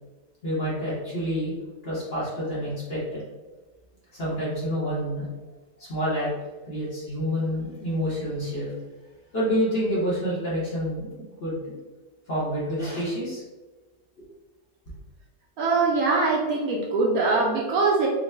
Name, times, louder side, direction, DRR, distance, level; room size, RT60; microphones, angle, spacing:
voice 1, 0.4-1.5 1.8-3.2 4.1-5.3 5.8-6.3 6.7-8.7 9.3-11.8 12.3-13.4 14.2-14.3, equal, 45° left, -7 dB, 0.9 m, -28 dB
voice 2, 15.6-18.1, right 3 dB, 70° right, -2 dB, 0.9 m, -22 dB
3.9 x 2.0 x 3.2 m, 1.2 s
omnidirectional pair, 1.8 m